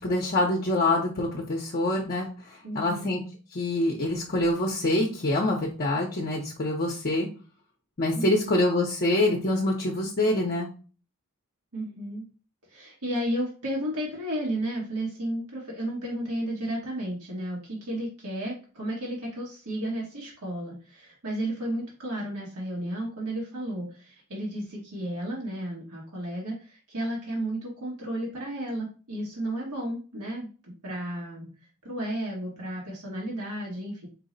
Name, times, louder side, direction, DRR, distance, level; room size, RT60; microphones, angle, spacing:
voice 1, 0.0-3.2 3.5-7.3 8.0-10.7, left 1 dB, 45° left, -1 dB, 0.6 m, -25 dB
voice 2, 2.6-3.1 8.1-8.5 11.7-12.2 12.7-30.5 30.8-31.5 31.8-34.1, right 1 dB, 85° right, -3 dB, 1.2 m, -33 dB
4.6 x 2.1 x 3.8 m, 0.36 s
head